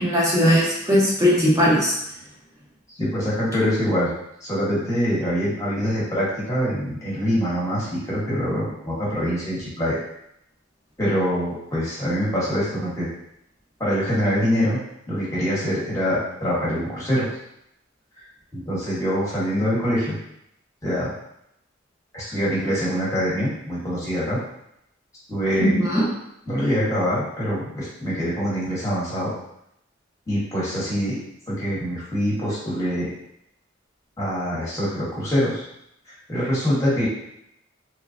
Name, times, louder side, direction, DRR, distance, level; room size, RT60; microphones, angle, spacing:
voice 1, 0.0-1.9 25.6-26.0, equal, 15° right, -6 dB, 0.8 m, -19 dB
voice 2, 3.0-4.1 4.4-10.0 11.0-13.1 13.8-14.8 15.1-17.3 18.5-20.1 20.8-21.1 22.1-24.4 25.3-25.7 26.5-29.3 30.3-31.2 31.5-33.1 34.2-35.6 36.1-37.1, equal, 15° left, -8 dB, 1.1 m, -24 dB
3.0 x 2.3 x 2.5 m, 0.78 s
head